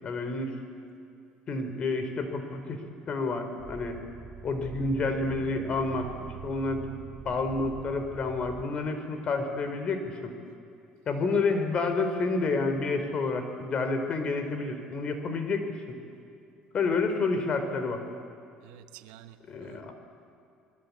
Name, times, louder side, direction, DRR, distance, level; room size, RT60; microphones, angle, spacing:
voice 1, 0.0-0.5 1.5-2.8 3.1-4.0 4.4-6.9 7.2-10.3 11.1-15.6 16.7-18.0 19.5-19.9, left 3 dB, 40° left, 7 dB, 4.0 m, -29 dB
sound 1, 3.6-8.6, right 7 dB, 45° right, 2.3 m, -44 dB
voice 2, 18.6-19.9, right 12 dB, 90° right, 10 dB, 1.3 m, -50 dB
27.5 x 20.5 x 8.5 m, 2.6 s
cardioid pair, 110°, 3 cm